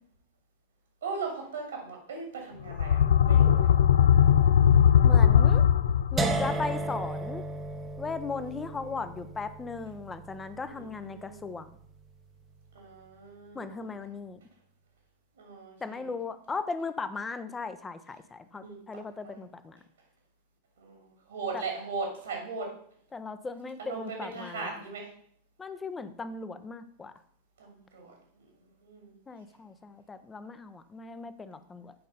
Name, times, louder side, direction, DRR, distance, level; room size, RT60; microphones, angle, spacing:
voice 1, 1.0-3.0 3.2-3.7 10.7-11.4 12.7-14.0 15.4-16.1 18.5-19.4 20.8-22.7 23.8-25.1 27.6-28.1 28.8-29.1, right 4 dB, 70° right, 1 dB, 2.6 m, -39 dB
sound 1, 2.7-6.4, left 9 dB, 65° left, 0.5 m, -20 dB
voice 2, 5.0-5.6 6.1-7.4 8.0-11.7 13.5-14.4 15.8-19.8 21.5-21.6 23.1-24.7 25.6-27.1 29.3-31.9, left 4 dB, 15° left, 11 dB, 0.7 m, -37 dB
sound 2, 6.2-12.1, right 2 dB, 15° right, 0.9 m, -35 dB
8.8 x 5.2 x 5.5 m, 0.62 s
figure-of-eight pair, 90°, 0 cm